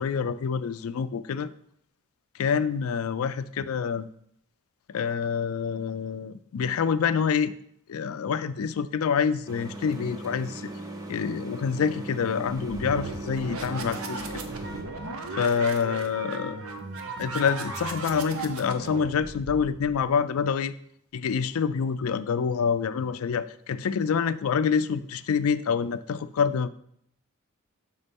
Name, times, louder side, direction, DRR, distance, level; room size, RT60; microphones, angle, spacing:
voice 1, 0.0-1.5 2.4-4.1 4.9-7.5 7.9-10.7 11.1-14.2 15.3-16.6 17.2-20.7 21.1-26.7, left 6 dB, 85° left, 14 dB, 0.4 m, -27 dB
sound 1, 9.5-14.8, right 1 dB, 15° right, 0.8 m, -38 dB
sound 2, 12.6-20.1, right 3 dB, 90° right, 0.8 m, -37 dB
Wind instrument woodwind instrument, 14.6-18.6, right 3 dB, 55° right, 0.9 m, -43 dB
6.3 x 4.2 x 5.2 m, 0.68 s
head